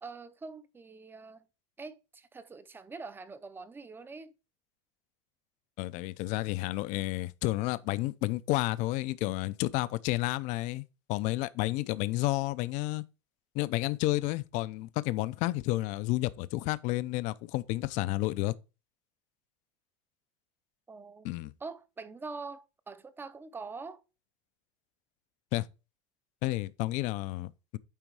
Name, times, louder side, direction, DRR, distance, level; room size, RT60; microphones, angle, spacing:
voice 1, 0.0-1.4 1.8-4.3 20.9-21.3 21.6-24.0, right 4 dB, 15° right, 0.6 m, -44 dB
voice 2, 5.8-10.8 11.1-13.0 13.5-18.5 21.2-21.5 25.5-25.7 26.4-27.8, left 18 dB, 50° left, 0.5 m, -31 dB
9.1 x 3.9 x 4.7 m
supercardioid pair, 145°, 16 cm